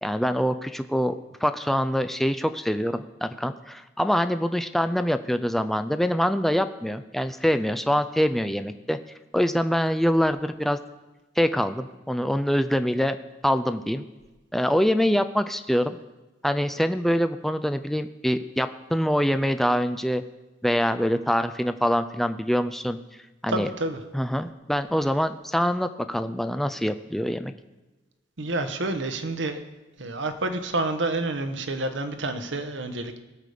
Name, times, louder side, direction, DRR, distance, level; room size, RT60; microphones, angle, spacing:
voice 1, 0.0-1.1 1.4-9.0 9.3-10.8 11.4-13.2 13.4-14.1 14.5-16.0 16.4-20.2 20.6-23.0 23.4-23.7 24.1-27.5, equal, ahead, 9 dB, 0.4 m, -24 dB
voice 2, 23.5-24.0 28.4-29.6 30.0-33.2, right 2 dB, 70° right, 7 dB, 1.1 m, -29 dB
17.0 x 6.7 x 5.0 m, 1.1 s
head